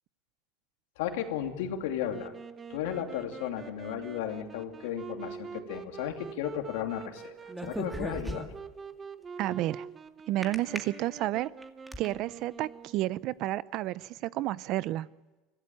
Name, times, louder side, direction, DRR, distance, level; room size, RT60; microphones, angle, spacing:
voice 1, 1.0-2.3 2.7-7.3 7.6-8.5, left 10 dB, 80° left, 5 dB, 2.7 m, -34 dB
Wind instrument woodwind instrument, 2.1-13.2, right 5 dB, 25° right, 1.2 m, -46 dB
sound 1, 7.5-8.7 10.4-10.8 11.4-12.1, right 1 dB, 5° right, 2.2 m, -36 dB
voice 2, 9.4-9.9 10.3-11.5 12.0-15.1, right 15 dB, 55° right, 19 dB, 0.6 m, -31 dB
25.0 x 16.0 x 8.9 m, 1.1 s
supercardioid pair, 115°, 0 cm